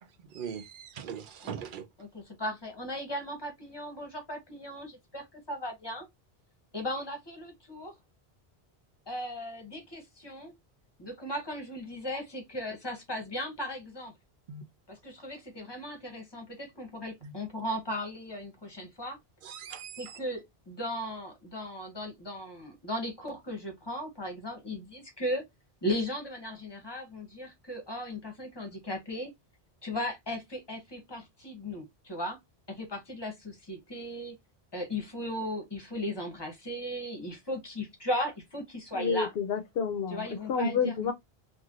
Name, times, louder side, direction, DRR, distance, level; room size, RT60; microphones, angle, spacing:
voice 1, 0.0-1.9 14.5-14.6 17.2-17.3 19.4-20.2, right 7 dB, 60° right, 0.7 m, -41 dB
voice 2, 2.1-6.1 6.7-7.9 9.1-10.5 11.0-14.1 14.9-19.2 20.0-25.4 25.8-29.3 29.8-32.4 32.7-34.4 34.7-39.3 40.1-41.1, left 1 dB, 25° left, 0.9 m, -37 dB
voice 3, 38.9-41.1, left 5 dB, 70° left, 0.8 m, -29 dB
3.2 x 2.5 x 2.4 m
omnidirectional pair, 1.1 m